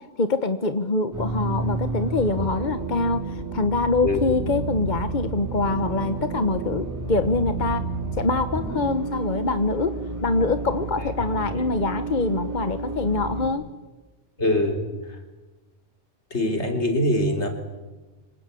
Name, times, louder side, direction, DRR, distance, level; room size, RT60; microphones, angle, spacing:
voice 1, 0.2-7.8 8.1-9.9 10.2-13.6, left 3 dB, 45° left, 10 dB, 1.2 m, -24 dB
sound 1, 1.1-13.5, right 3 dB, 15° right, 5.3 m, -31 dB
voice 2, 14.4-14.9 16.3-17.5, left 1 dB, 70° left, 4 dB, 4.1 m, -23 dB
26.0 x 26.0 x 8.4 m, 1.2 s
omnidirectional pair, 1.2 m